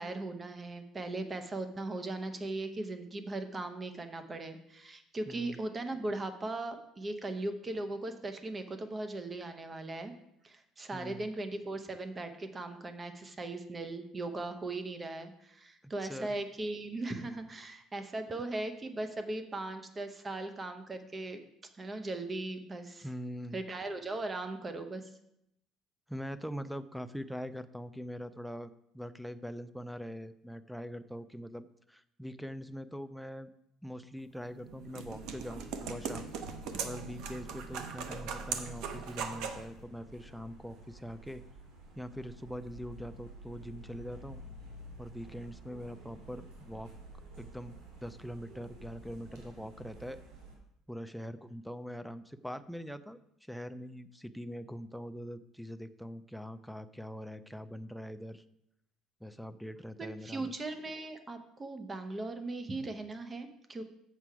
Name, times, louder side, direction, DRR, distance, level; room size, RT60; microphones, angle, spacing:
voice 1, 0.0-10.1 10.4-21.4 21.8-23.1 23.5-25.1 60.2-63.8, right 2 dB, 20° right, 8 dB, 0.8 m, -38 dB
voice 2, 5.3-5.6 10.9-11.3 16.0-16.4 23.0-23.6 26.1-33.5 33.8-36.3 36.8-41.4 42.0-44.4 45.0-46.9 47.4-50.2 50.9-58.4 59.2-60.5, equal, ahead, 13 dB, 0.4 m, -43 dB
sound 1, 34.4-39.7, right 6 dB, 70° right, 0.8 m, -40 dB
sound 2, 35.0-50.6, right 1 dB, 90° right, 2.4 m, -51 dB
7.5 x 6.8 x 4.8 m, 0.79 s
cardioid pair, 150°, 0 cm